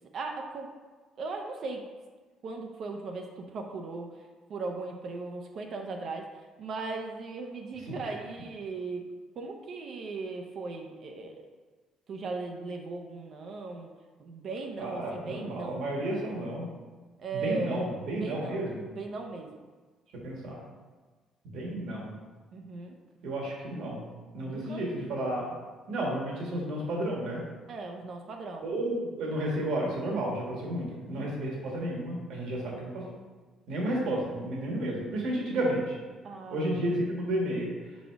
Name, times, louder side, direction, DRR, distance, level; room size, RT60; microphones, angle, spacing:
voice 1, 0.1-0.7 1.2-1.9 2.4-6.2 6.6-9.1 9.3-11.4 12.1-13.9 14.2-15.8 17.2-19.5 22.5-23.0 24.4-24.8 27.7-28.7 31.1-31.4 36.2-36.9, right 3 dB, 50° right, 3 dB, 0.6 m, -38 dB
voice 2, 14.8-16.7 17.3-18.8 20.2-20.6 21.5-22.2 23.2-24.1 24.3-25.5 25.9-27.4 28.6-33.0 33.7-36.0 36.5-37.7, right 1 dB, 70° right, -3 dB, 1.7 m, -32 dB
5.0 x 4.1 x 4.6 m, 1.4 s
cardioid pair, 130°, 0 cm